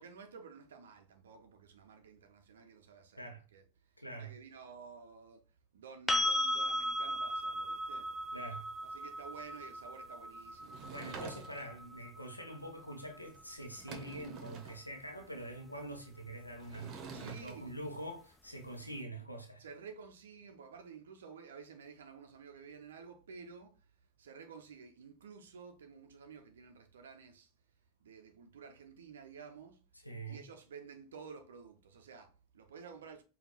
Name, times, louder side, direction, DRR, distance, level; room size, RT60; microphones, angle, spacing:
voice 1, 0.0-3.2 3.5-3.6 4.2-5.4 5.7-8.1 8.9-11.3 17.1-17.7 19.6-23.7 24.2-27.5 28.0-29.8 30.3-33.2, right 5 dB, 70° right, 0.5 m, -52 dB
voice 2, 4.0-4.4 8.3-8.7 10.8-19.7 29.9-30.4, right 1 dB, 90° left, 0.6 m, -45 dB
sound 1, 6.1-13.9 16.7-16.8, left 1 dB, 5° left, 0.4 m, -37 dB
Sliding door / Wood, 10.6-11.8 13.3-13.4 13.7-14.8 16.6-17.5, right 4 dB, 40° right, 0.8 m, -47 dB
5.0 x 2.3 x 2.8 m
figure-of-eight pair, 85°, 0 cm